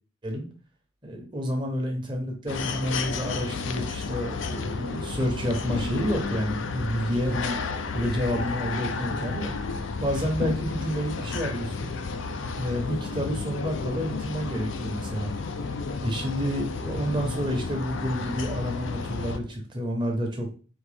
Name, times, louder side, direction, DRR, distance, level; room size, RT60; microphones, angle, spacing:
voice 1, 1.0-7.6 7.9-9.5 10.0-11.9 12.5-15.3 16.0-20.5, equal, 25° right, 1 dB, 1.0 m, -29 dB
sound 1, 2.5-19.4, left 4 dB, 70° left, 0.4 m, -32 dB
4.3 x 3.0 x 3.4 m, 0.37 s
head